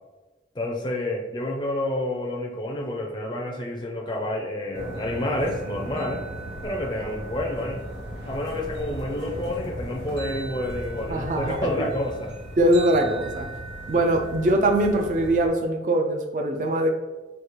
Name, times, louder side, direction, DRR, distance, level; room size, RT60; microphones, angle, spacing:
voice 1, 0.5-6.2 6.6-7.8 8.3-12.3, left 1 dB, 25° left, 0 dB, 0.4 m, -29 dB
sound 1, 4.7-15.5, right 1 dB, 75° right, 1.0 m, -36 dB
voice 2, 11.1-11.8 12.6-13.5 13.9-16.9, right 1 dB, 45° right, 3 dB, 0.3 m, -22 dB
4.9 x 2.3 x 3.0 m, 1.1 s
head